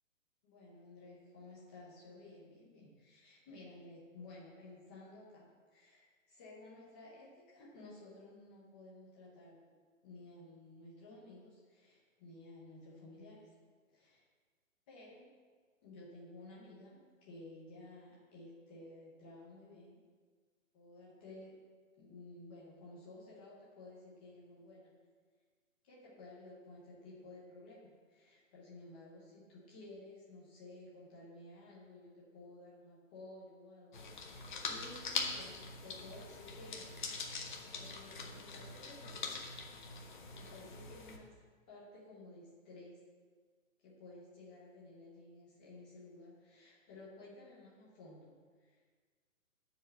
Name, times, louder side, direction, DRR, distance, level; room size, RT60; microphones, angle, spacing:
voice 1, 0.4-9.6 10.0-13.5 13.9-14.2 14.9-15.3 15.8-20.0 20.7-21.5 22.0-24.9 25.8-37.1 37.7-39.4 40.3-41.4 41.7-43.0 43.8-48.9, left 2 dB, 5° left, -6 dB, 0.7 m, -54 dB
sound 1, 33.9-41.2, left 4 dB, 35° left, 1.0 m, -43 dB
9.6 x 4.9 x 7.5 m, 1.5 s
hypercardioid pair, 170°, 40 cm